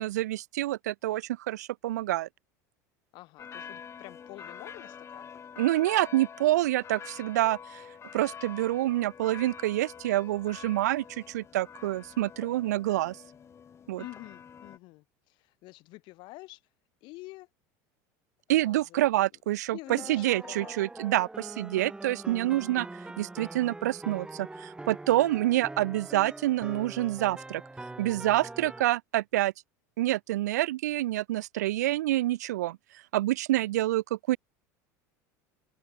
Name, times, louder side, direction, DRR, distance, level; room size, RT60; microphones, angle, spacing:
voice 1, 0.0-2.3 5.6-7.8 8.1-13.2 13.9-14.0 18.5-22.9 23.2-27.6 28.0-29.5 30.0-32.8 33.1-34.4, right 15 dB, 90° right, 0.7 m, -27 dB
voice 2, 3.1-5.3 14.0-16.6 17.0-17.5 18.5-19.3 19.7-20.7 22.5-22.7 33.6-33.8, left 22 dB, 60° left, 5.8 m, -47 dB
sound 1, 3.4-14.8, left 7 dB, 30° left, 5.4 m, -46 dB
sound 2, 19.9-28.8, right 2 dB, 10° right, 3.9 m, -43 dB
open air
supercardioid pair, 105°, 9 cm